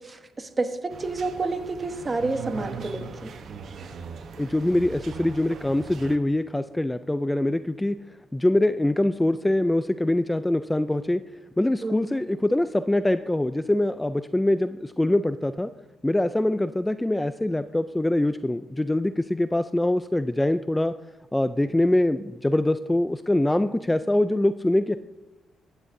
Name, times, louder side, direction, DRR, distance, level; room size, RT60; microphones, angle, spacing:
voice 1, 0.0-3.3 11.8-12.2, right 3 dB, 25° right, 8 dB, 1.1 m, -30 dB
sound 1, 0.9-6.2, right 5 dB, 60° right, 0.9 m, -39 dB
voice 2, 4.4-8.0 8.3-11.2 11.6-15.7 16.0-20.9 21.3-25.0, left 1 dB, 10° left, 12 dB, 0.3 m, -24 dB
15.0 x 9.9 x 2.7 m, 1.1 s
cardioid pair, 90°, 0 cm